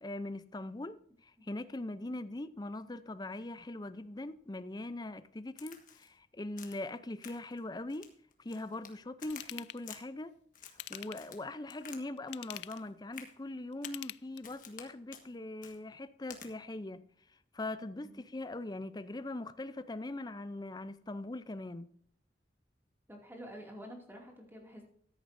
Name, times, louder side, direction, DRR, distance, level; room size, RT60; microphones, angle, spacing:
voice 1, 0.0-8.1 8.4-10.3 10.6-17.0 17.5-21.9, left 2 dB, 25° left, 0.5 m, -41 dB
voice 2, 1.4-1.8 18.0-18.2 23.1-24.9, equal, 10° right, 2.4 m, -49 dB
Crack, 5.6-6.1 6.6-6.9 7.2-7.6 7.9-8.9 9.2-10.0 10.5-12.0 12.3-12.8 13.1-13.3 13.8-14.0 14.4-14.8 15.1-15.3 15.6-15.8 16.3-16.5, left 7 dB, 50° left, 1.5 m, -51 dB
Ratchet pawl / Tools, 9.3-9.8 10.7-11.4 12.2-12.9 13.7-14.6 15.1-15.2, left 15 dB, 75° left, 0.3 m, -45 dB
14.0 x 10.5 x 2.6 m
head